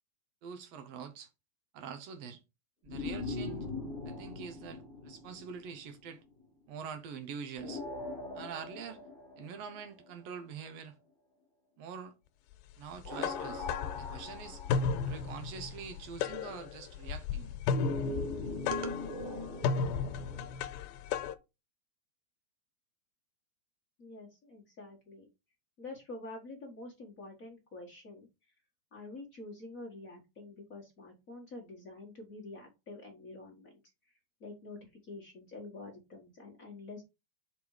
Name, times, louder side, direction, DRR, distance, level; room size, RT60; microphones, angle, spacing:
voice 1, 0.4-1.3 1.7-2.4 2.8-3.7 4.0-6.2 6.7-7.8 8.3-9.0 9.4-11.0 11.8-12.1 12.8-13.7 13.9-14.6 15.0-17.6 18.7-19.0, right 6 dB, 75° right, 1.5 m, -44 dB
sound 1, 2.9-6.2 7.6-10.4 13.0-15.7 17.7-20.5, left 2 dB, 15° right, 2.7 m, -41 dB
sound 2, 13.0-21.4, left 5 dB, 90° left, 2.5 m, -34 dB
voice 2, 24.0-25.3 25.8-28.3 28.9-33.7 34.4-37.0, left 2 dB, 60° left, 0.8 m, -47 dB
5.9 x 5.1 x 4.9 m
omnidirectional pair, 4.2 m